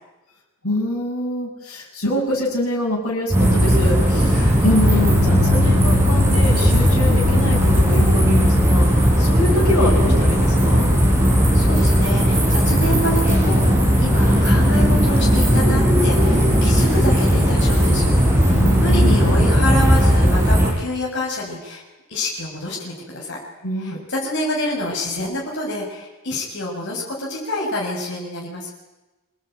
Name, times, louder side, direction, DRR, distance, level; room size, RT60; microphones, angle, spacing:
voice 1, 0.6-10.9 18.5-19.3 23.6-24.0, left 1 dB, 75° left, -5 dB, 6.7 m, -25 dB
sound 1, 3.3-20.7, equal, 10° right, 6.3 m, -16 dB
voice 2, 11.3-21.8 22.1-23.4 23.8-28.7, left 1 dB, 55° left, -3 dB, 6.6 m, -27 dB
26.0 x 19.0 x 9.2 m, 1.1 s
head